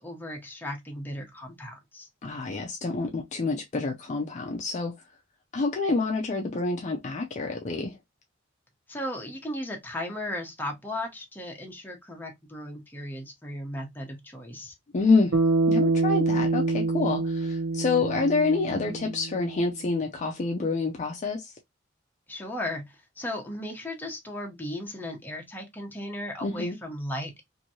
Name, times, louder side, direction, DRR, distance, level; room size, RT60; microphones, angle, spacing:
voice 1, 0.0-2.1 8.9-14.7 22.3-27.4, left 1 dB, 10° left, 0.8 m, -36 dB
voice 2, 2.2-4.9 5.5-8.0 14.9-15.3 15.7-21.5 26.4-26.8, left 3 dB, 40° left, 0.4 m, -27 dB
Bass guitar, 15.3-19.7, right 3 dB, 80° right, 0.8 m, -26 dB
2.9 x 2.6 x 2.7 m
head